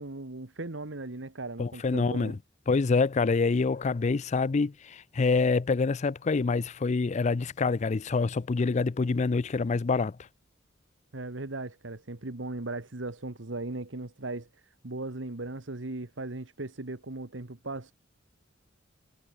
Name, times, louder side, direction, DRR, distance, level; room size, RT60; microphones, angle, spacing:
voice 1, 0.0-2.4 11.1-17.9, right 2 dB, 70° right, 1.5 m, -38 dB
voice 2, 1.6-2.4 2.7-10.2, left 4 dB, 35° left, 0.4 m, -26 dB
head